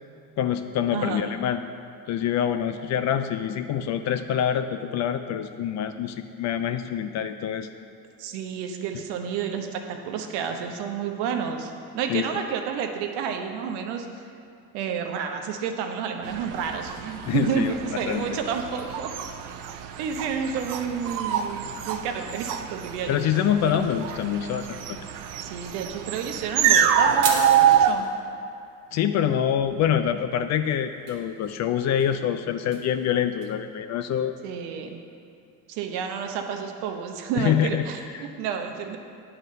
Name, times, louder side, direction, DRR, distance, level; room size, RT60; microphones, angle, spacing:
voice 1, 0.4-1.6 2.1-7.7 12.1-12.2 17.3-18.2 23.1-25.0 28.9-34.3 37.3-37.9 38.2-38.3, left 9 dB, 40° left, 9 dB, 0.4 m, -25 dB
voice 2, 0.9-1.3 8.2-14.1 14.7-19.1 20.0-23.2 23.7-23.8 25.4-28.1 34.4-35.0 35.7-39.0, right 6 dB, 65° right, 5 dB, 0.9 m, -30 dB
sound 1, 16.2-27.9, right 9 dB, 45° right, 0.6 m, -26 dB
sound 2, 22.8-33.5, right 5 dB, 80° right, 1.2 m, -41 dB
9.0 x 3.9 x 5.4 m, 2.6 s
hypercardioid pair, 75°, 45 cm